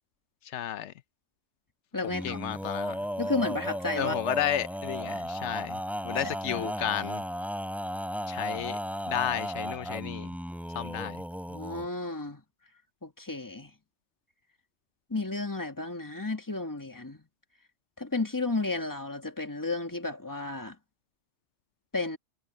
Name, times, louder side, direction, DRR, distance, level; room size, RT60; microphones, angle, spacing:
voice 1, 0.4-0.9 2.2-3.1 3.9-7.2 8.3-8.8 9.1-10.3 10.7-11.2, left 10 dB, 85° left, 1.0 m, -32 dB
voice 2, 1.9-2.7 3.2-4.2 6.2-6.7 11.5-12.4 13.0-13.7 15.1-17.2 18.0-20.8 21.9-22.2, left 3 dB, 15° left, 1.9 m, -33 dB
Male singing, 2.1-11.9, equal, ahead, 3.5 m, -35 dB
omnidirectional pair, 1.2 m